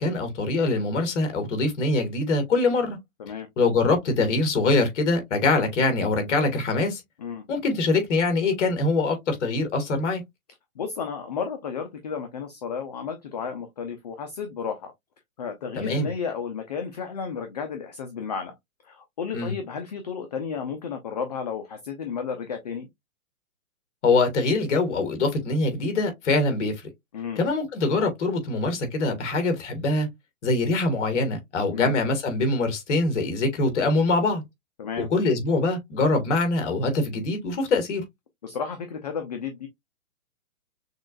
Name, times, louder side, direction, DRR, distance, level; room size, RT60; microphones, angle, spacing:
voice 1, 0.0-3.0 3.6-7.0 7.5-10.2 15.8-16.1 19.3-19.5 24.0-26.7 27.4-30.1 30.4-34.4 35.0-38.0, left 3 dB, 55° left, 1.9 m, -23 dB
voice 2, 10.8-14.9 15.4-18.5 18.8-22.9 27.1-27.4 31.7-31.9 34.8-35.1 38.4-39.7, left 6 dB, 30° left, 0.5 m, -33 dB
6.2 x 2.4 x 2.4 m
hypercardioid pair, 150°, 42 cm